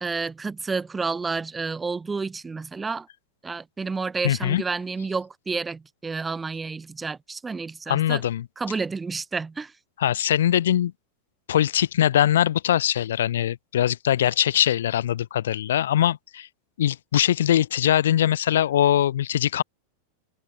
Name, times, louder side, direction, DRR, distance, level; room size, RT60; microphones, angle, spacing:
voice 1, 0.0-3.1 3.4-8.2 8.6-9.7, right 4 dB, 15° right, 1.7 m, -30 dB
voice 2, 4.2-4.6 7.9-8.5 10.0-10.9 11.5-16.5 16.8-19.6, left 11 dB, 60° left, 2.0 m, -22 dB
figure-of-eight pair, 90°, 0 cm